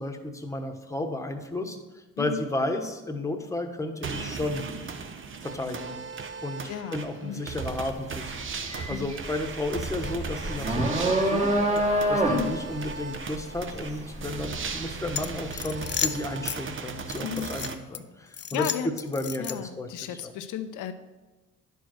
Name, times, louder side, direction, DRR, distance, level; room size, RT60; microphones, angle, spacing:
voice 1, 0.0-4.6 5.4-6.0 6.4-20.3, left 1 dB, 10° left, 4 dB, 1.1 m, -33 dB
voice 2, 2.2-2.5 6.7-7.4 8.9-9.1 12.3-12.6 17.2-17.6 18.5-18.9 19.4-20.9, left 9 dB, 90° left, 10 dB, 0.8 m, -34 dB
sound 1, 4.0-17.7, right 5 dB, 40° right, 0.9 m, -37 dB
sound 2, 7.6-7.9 8.2-15.2, right 1 dB, 20° right, 1.5 m, -27 dB
sound 3, 15.2-16.6 17.1-18.0 18.3-19.8, left 9 dB, 35° left, 0.5 m, -33 dB
10.0 x 4.6 x 6.3 m, 1.2 s
cardioid pair, 90°, 30 cm